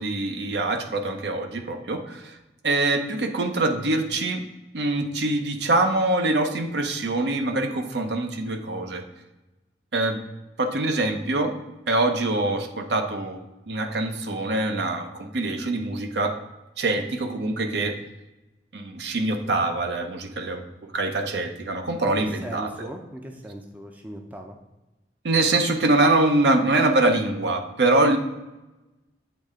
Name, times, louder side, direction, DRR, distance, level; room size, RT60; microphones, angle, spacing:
voice 1, 0.0-2.3 2.6-4.4 4.7-9.0 9.9-10.2 10.6-11.5 11.9-16.4 16.8-18.0 18.7-22.9 25.2-28.2, right 2 dB, 70° right, 5 dB, 0.6 m, -24 dB
voice 2, 22.2-24.6, right 1 dB, 10° right, 3 dB, 0.4 m, -38 dB
8.1 x 3.2 x 3.6 m, 1.0 s
head